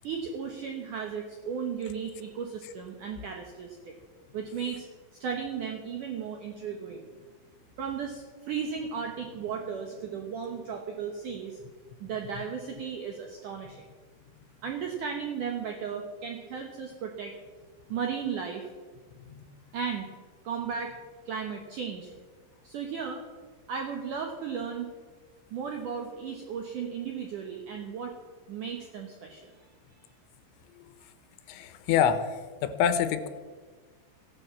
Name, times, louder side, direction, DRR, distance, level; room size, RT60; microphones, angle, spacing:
voice 1, 0.0-3.9 4.3-4.9 5.2-7.1 7.8-11.6 12.0-13.8 14.6-17.3 17.9-18.7 19.7-20.1 20.4-21.0 21.3-22.1 22.6-23.2 23.7-24.9 25.5-28.2 28.5-29.5, right 6 dB, 85° right, 2 dB, 1.8 m, -35 dB
voice 2, 31.5-32.2 32.6-33.3, left 8 dB, 80° left, 11 dB, 3.3 m, -26 dB
15.5 x 10.0 x 7.0 m, 1.4 s
omnidirectional pair, 5.5 m